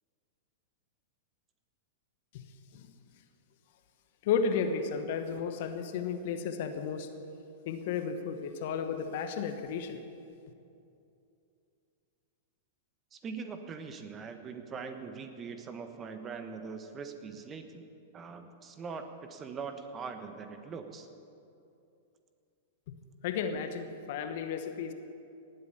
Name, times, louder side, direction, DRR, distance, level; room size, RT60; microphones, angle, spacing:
voice 1, 4.2-7.1 7.6-10.0 22.9-23.0 23.2-24.9, left 6 dB, 55° left, 8 dB, 1.2 m, -33 dB
voice 2, 13.1-17.9 18.1-21.1, right 5 dB, 25° right, 7 dB, 1.3 m, -42 dB
18.5 x 8.4 x 6.9 m, 2.6 s
hypercardioid pair, 105°, 0 cm